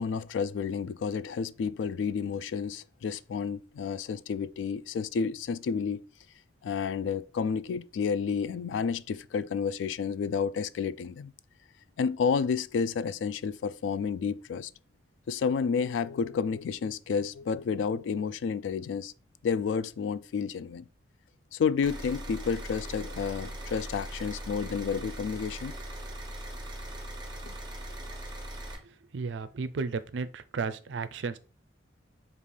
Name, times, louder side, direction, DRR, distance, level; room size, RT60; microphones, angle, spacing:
voice 1, 0.0-6.1 6.6-11.3 12.0-14.7 15.3-19.1 19.4-20.8 21.5-25.7 27.4-27.6, left 6 dB, 85° left, 0.3 m, -30 dB
sound 1, 21.8-28.8, right 1 dB, 25° right, 0.9 m, -40 dB
voice 2, 29.1-31.4, right 4 dB, 75° right, 0.4 m, -33 dB
5.2 x 2.5 x 3.2 m
head